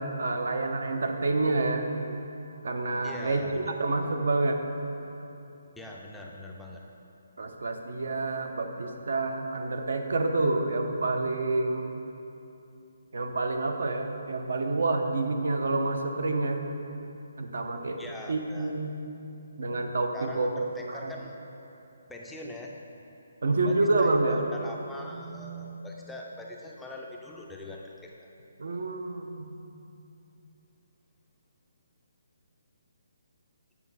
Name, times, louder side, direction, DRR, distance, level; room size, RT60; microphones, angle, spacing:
voice 1, 0.0-1.9 2.6-4.6 7.4-12.0 13.1-16.6 17.4-18.0 18.3-18.9 19.6-20.5 20.9-21.1 23.4-24.4 28.6-29.6, right 2 dB, 70° right, 5 dB, 0.8 m, -28 dB
voice 2, 3.0-3.7 5.8-6.8 18.0-18.7 20.1-21.4 22.1-22.7 23.6-28.1, left 1 dB, 5° left, -2 dB, 0.4 m, -42 dB
8.4 x 5.2 x 5.4 m, 2.8 s
hypercardioid pair, 165°, 0 cm